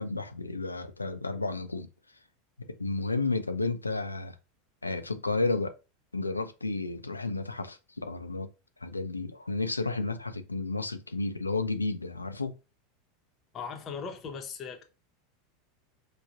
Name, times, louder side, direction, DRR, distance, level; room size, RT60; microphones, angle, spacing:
voice 1, 0.0-1.9 2.6-4.3 4.8-5.8 6.1-8.5 8.8-12.5, left 3 dB, 90° left, 0.4 m, -32 dB
voice 2, 13.5-14.8, left 6 dB, 35° left, 0.7 m, -38 dB
4.8 x 2.2 x 2.5 m
figure-of-eight pair, 85°, 0 cm